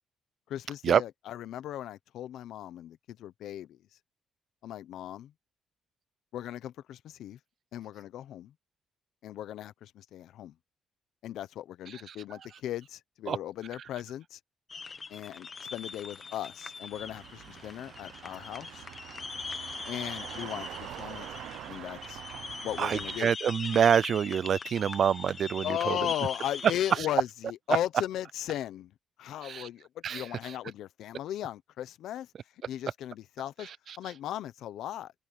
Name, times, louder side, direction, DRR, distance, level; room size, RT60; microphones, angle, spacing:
voice 1, 0.5-3.8 4.6-5.3 6.3-7.4 7.7-8.5 9.2-10.5 11.2-14.4 15.1-18.8 19.9-21.4 21.7-22.2 22.6-23.3 25.6-28.9 29.2-32.3 32.7-33.7 34.0-35.1, left 12 dB, 80° left, 0.9 m, -37 dB
sound 1, 14.7-27.0, left 5 dB, 30° left, 1.0 m, -41 dB
sound 2, 16.9-23.2, right 13 dB, 90° right, 0.7 m, -45 dB
voice 2, 22.8-26.1 27.0-27.1 29.4-29.7 30.0-30.6 33.6-34.0, right 8 dB, 50° right, 0.4 m, -27 dB
open air
cardioid pair, 135°, 0 cm